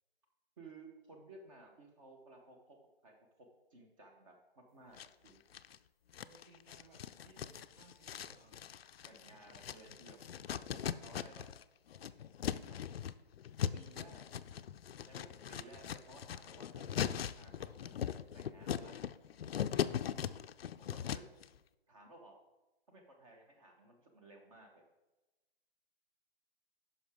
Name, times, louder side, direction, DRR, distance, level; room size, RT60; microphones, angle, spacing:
voice 1, 0.6-2.8 3.0-3.2 3.7-5.0 5.2-5.4 9.0-10.2 10.5-11.5 13.7-14.6 15.1-17.0 17.4-19.0 20.8-21.3 21.9-22.3 22.9-24.8, right 2 dB, 35° right, 2 dB, 1.0 m, -57 dB
sound 1, 5.0-5.8 6.1-11.6 11.9-21.4, left 9 dB, 70° left, 0.4 m, -40 dB
voice 2, 6.2-8.6 9.1-10.0 10.4-10.7 15.7-15.9 20.0-20.4, right 3 dB, 60° right, -2 dB, 1.6 m, -64 dB
9.5 x 5.8 x 3.5 m, 1.1 s
hypercardioid pair, 150°, 31 cm